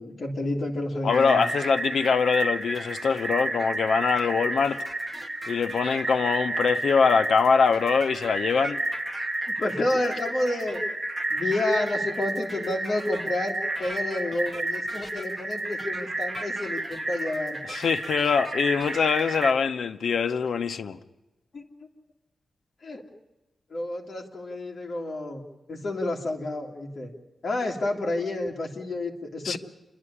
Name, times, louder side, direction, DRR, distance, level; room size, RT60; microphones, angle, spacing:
voice 1, 0.0-1.5 9.5-10.8 11.3-17.6 21.5-21.7 22.8-23.0 23.7-27.1 27.4-29.6, left 2 dB, 40° left, 2.3 m, -30 dB
voice 2, 1.0-4.8 5.5-8.8 17.7-21.0 29.4-29.6, left 5 dB, 75° left, 0.7 m, -23 dB
sound 1, 1.1-19.5, right 2 dB, 20° right, 1.4 m, -31 dB
28.0 x 11.0 x 9.8 m
wide cardioid pair, 175°, 0 cm